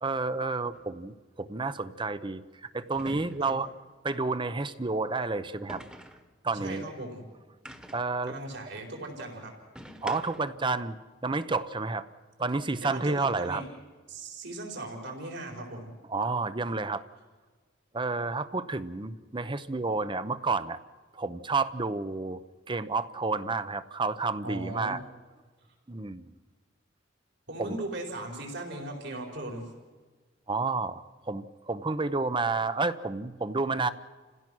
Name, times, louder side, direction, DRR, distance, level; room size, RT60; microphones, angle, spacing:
voice 1, 0.0-3.7 4.0-5.8 6.4-6.8 7.9-8.4 10.0-11.0 11.2-12.1 12.4-13.6 16.1-17.0 17.9-20.8 21.1-22.4 22.7-25.0 25.9-26.4 27.6-27.8 30.5-33.9, right 3 dB, 25° right, 13 dB, 0.8 m, -30 dB
sound 1, 0.7-0.9 2.9-3.7 5.7-6.3 7.7-8.2 9.8-10.6, equal, 5° right, 1.4 m, -44 dB
voice 2, 6.5-7.2 8.3-9.5 12.8-13.7 14.1-15.9 24.4-25.0 27.5-29.7, right 2 dB, 60° right, 1 dB, 4.7 m, -38 dB
30.0 x 16.5 x 6.3 m, 1.4 s
head